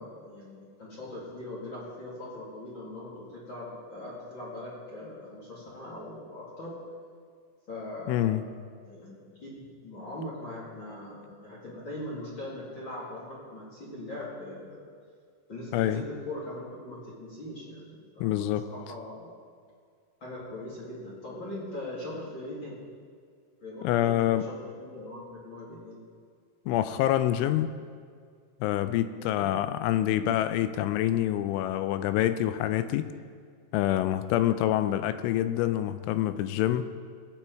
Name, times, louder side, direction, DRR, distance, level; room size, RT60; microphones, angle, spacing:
voice 1, 0.0-6.7 7.7-8.5 8.8-14.9 15.5-19.3 20.2-22.8 23.6-26.0 29.2-29.5, left 1 dB, 40° left, -6 dB, 1.8 m, -41 dB
voice 2, 8.1-8.4 15.7-16.0 18.2-18.7 23.8-24.5 26.7-27.7 28.6-33.1 33.7-36.9, left 12 dB, 85° left, 11 dB, 2.9 m, -26 dB
18.5 x 8.9 x 4.5 m, 2.1 s
omnidirectional pair, 5.6 m